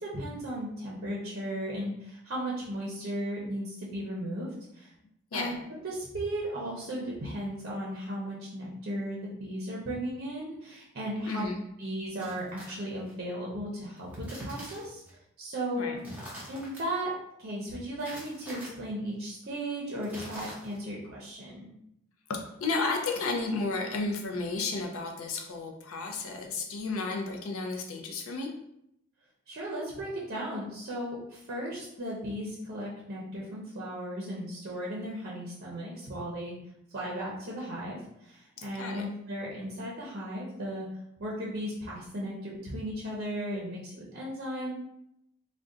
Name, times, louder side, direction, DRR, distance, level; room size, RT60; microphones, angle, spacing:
voice 1, 0.0-4.9 5.3-5.6 5.8-11.5 11.8-15.0 15.4-16.0 16.5-17.1 17.4-21.7 29.5-36.5 36.9-40.9 41.2-44.7, right 1 dB, 50° right, -4 dB, 0.6 m, -36 dB
voice 2, 11.3-11.6 15.8-15.9 22.3-28.5 38.7-39.1, left 3 dB, 70° left, 3 dB, 0.5 m, -32 dB
sound 1, 12.2-13.1 14.0-15.1 16.0-16.8 18.0-18.7 20.0-20.9, equal, 10° right, 0.7 m, -45 dB
2.5 x 2.2 x 3.6 m, 0.79 s
head